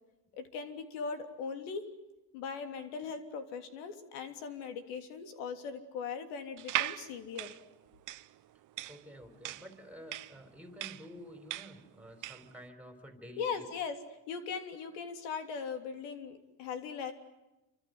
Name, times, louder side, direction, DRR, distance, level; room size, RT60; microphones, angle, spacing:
voice 1, 0.3-1.9 2.3-7.6 13.4-14.0 14.3-17.1, left 5 dB, 90° left, 7 dB, 3.4 m, -39 dB
sound 1, 6.6-12.5, right 14 dB, 45° right, 0.9 m, -39 dB
voice 2, 8.9-13.7, equal, 5° right, 7 dB, 4.5 m, -50 dB
28.0 x 25.0 x 8.0 m, 0.98 s
cardioid pair, 130°, 44 cm